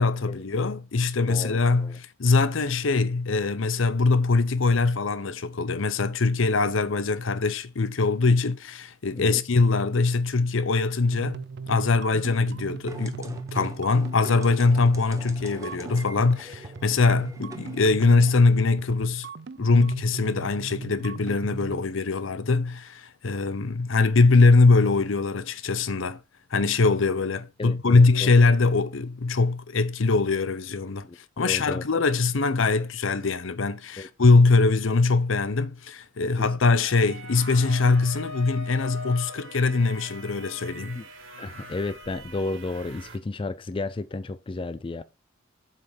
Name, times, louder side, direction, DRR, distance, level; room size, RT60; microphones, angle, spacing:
voice 1, 0.0-19.3 19.6-26.2 26.5-31.1 31.4-41.0, left 3 dB, 70° left, 0.7 m, -22 dB
voice 2, 1.3-2.0 9.2-9.4 16.9-17.0 27.6-28.4 31.0-31.2 31.4-31.8 34.0-34.1 36.4-36.5 41.0-41.1 41.4-45.0, left 3 dB, 25° left, 0.4 m, -33 dB
sound 1, 11.1-21.8, right 5 dB, 55° right, 0.5 m, -39 dB
sound 2, 12.9-18.4, right 2 dB, 15° right, 0.9 m, -44 dB
sound 3, 36.8-43.2, equal, 75° right, 2.0 m, -42 dB
7.7 x 5.5 x 5.0 m
head